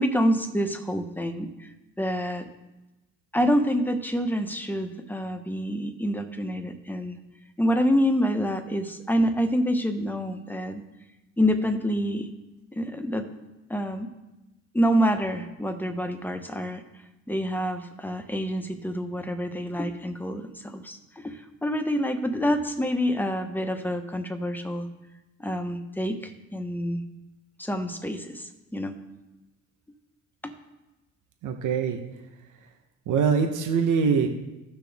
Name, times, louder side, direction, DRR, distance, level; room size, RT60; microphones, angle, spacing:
voice 1, 0.0-1.7 2.0-2.5 3.3-7.2 7.6-10.8 11.4-12.3 12.7-13.3 13.7-14.1 14.7-16.8 17.3-24.9 25.4-27.1 27.6-29.0, equal, 5° left, 6 dB, 1.1 m, -27 dB
voice 2, 31.4-32.0 33.1-34.3, right 6 dB, 90° right, 4 dB, 1.0 m, -23 dB
15.0 x 6.0 x 3.5 m, 1.0 s
cardioid pair, 90°, 30 cm